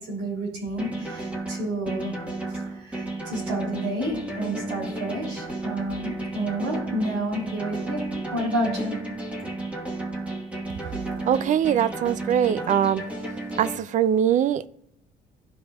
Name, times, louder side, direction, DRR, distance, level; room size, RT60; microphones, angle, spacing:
voice 1, 0.1-2.1 2.6-8.0 8.3-9.0, right 1 dB, 85° right, -4 dB, 3.2 m, -30 dB
sound 1, 0.8-13.8, right 2 dB, 5° right, 1.4 m, -33 dB
voice 2, 11.3-13.0 13.6-14.7, right 9 dB, 50° right, 17 dB, 0.4 m, -22 dB
13.0 x 5.1 x 2.4 m, 0.73 s
cardioid pair, 110°, 17 cm